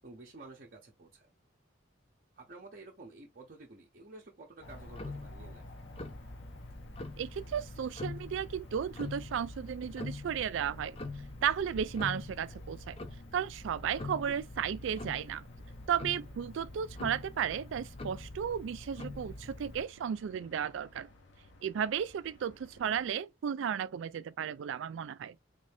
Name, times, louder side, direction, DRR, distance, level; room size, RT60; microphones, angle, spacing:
voice 1, 0.0-1.3 2.4-5.9 14.1-14.4, right 2 dB, 45° right, 0.7 m, -51 dB
sound 1, 4.6-23.1, left 2 dB, 65° left, 0.8 m, -58 dB
Tick-tock, 4.6-19.9, left 2 dB, 30° left, 0.5 m, -44 dB
voice 2, 7.2-11.0 11.4-13.0 13.3-15.4 15.9-21.1 21.6-25.4, right 8 dB, 70° right, 0.3 m, -34 dB
3.6 x 2.6 x 3.3 m
head